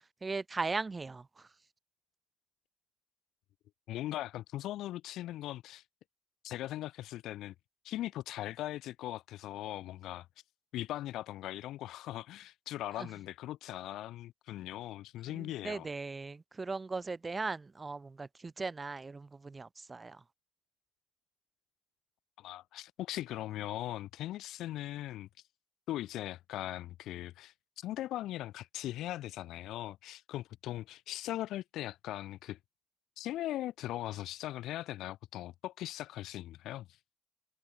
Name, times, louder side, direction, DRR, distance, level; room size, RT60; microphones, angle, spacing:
voice 1, 0.2-1.5 13.0-13.1 15.3-20.2, right 3 dB, 25° right, 0.5 m, -38 dB
voice 2, 3.9-5.8 6.4-7.5 7.8-10.3 10.7-15.9 22.4-25.3 25.9-32.6 33.2-36.9, left 14 dB, 85° left, 0.4 m, -39 dB
cardioid pair, 90°, 0 cm